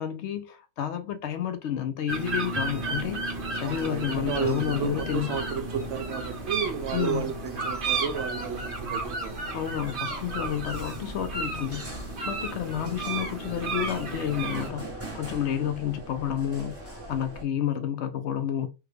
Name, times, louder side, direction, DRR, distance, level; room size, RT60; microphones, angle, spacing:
voice 1, 0.0-3.2 3.5-5.4 6.9-7.3 9.5-11.9 12.3-14.9 15.1-18.7, left 10 dB, 70° left, 0.8 m, -30 dB
sound 1, 2.1-14.7, right 3 dB, 50° right, 1.0 m, -33 dB
sound 2, 2.5-17.4, right 1 dB, 15° right, 0.7 m, -41 dB
voice 2, 3.6-9.6, right 7 dB, 75° right, 0.9 m, -32 dB
3.4 x 2.2 x 3.3 m
omnidirectional pair, 1.2 m